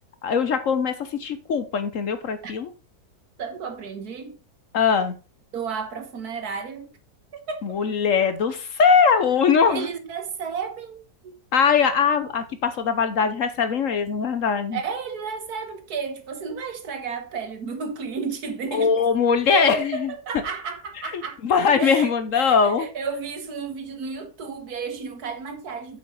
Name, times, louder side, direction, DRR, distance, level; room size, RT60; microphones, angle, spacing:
voice 1, 0.2-2.7 4.7-5.2 7.6-9.9 11.5-14.8 18.7-20.1 21.1-22.9, left 6 dB, 55° left, 1.1 m, -21 dB
voice 2, 3.4-4.4 5.5-6.9 7.3-7.8 9.7-11.4 14.7-19.0 19.5-21.4 21.8-26.0, right 5 dB, 70° right, 1.8 m, -32 dB
7.9 x 6.9 x 3.8 m
omnidirectional pair, 1.7 m